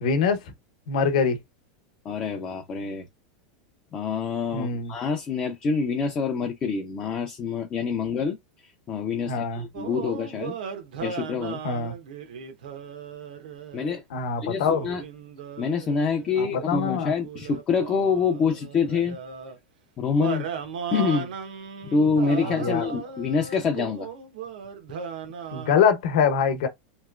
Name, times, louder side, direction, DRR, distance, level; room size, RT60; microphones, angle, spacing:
voice 1, 0.0-0.4 0.9-1.4 4.5-5.0 9.2-9.7 11.6-12.0 14.1-14.9 16.4-17.1 22.4-22.9 25.5-26.7, left 6 dB, 60° left, 0.8 m, -24 dB
voice 2, 2.1-3.0 3.9-8.4 8.9-10.6 11.0-11.6 13.7-14.0 14.4-15.0 15.6-19.2 20.0-20.5 20.9-21.3 21.9-24.1, left 5 dB, 20° left, 0.4 m, -26 dB
sound 1, 9.7-14.0 14.6-19.6 20.2-25.9, right 6 dB, 90° right, 0.8 m, -37 dB
3.0 x 3.0 x 2.3 m
supercardioid pair, 175°, 4 cm